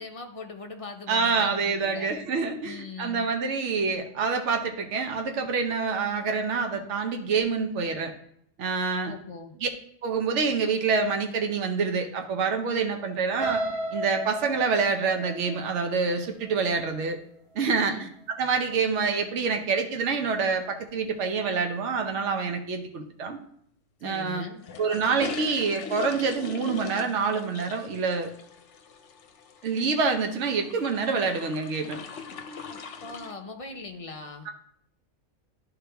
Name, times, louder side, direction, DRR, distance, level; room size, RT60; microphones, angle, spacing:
voice 1, 0.0-2.2 2.6-3.3 9.0-9.6 17.8-18.1 24.0-24.6 32.7-34.5, left 3 dB, 35° left, 3 dB, 0.6 m, -40 dB
voice 2, 1.1-8.1 8.6-9.1 9.6-9.7 10.0-13.6 13.9-17.2 17.5-18.1 18.4-23.4 24.0-24.4 24.8-28.3 29.6-32.0, right 5 dB, 65° right, 4 dB, 1.1 m, -27 dB
sound 1, 13.4-17.3 17.8-18.1 18.5-18.6, right 1 dB, 45° right, 2.1 m, -34 dB
sound 2, 24.6-33.3, left 5 dB, 70° left, 1.0 m, -41 dB
11.5 x 3.9 x 3.4 m, 0.70 s
omnidirectional pair, 1.3 m